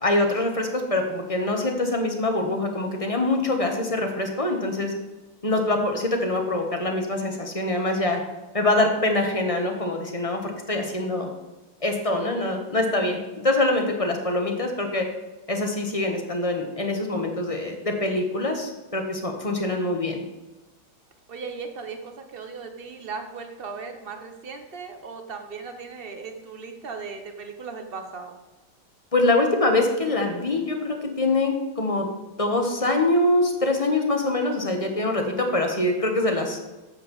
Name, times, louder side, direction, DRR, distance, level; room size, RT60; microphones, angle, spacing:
voice 1, 0.0-4.9 5.4-8.2 8.5-11.3 11.8-13.2 13.4-15.1 15.5-20.2 29.1-32.1 32.4-36.6, left 2 dB, 20° left, 3 dB, 1.0 m, -24 dB
voice 2, 21.3-28.3, right 5 dB, 40° right, 6 dB, 0.8 m, -37 dB
8.2 x 6.3 x 7.0 m, 1.1 s
omnidirectional pair, 2.2 m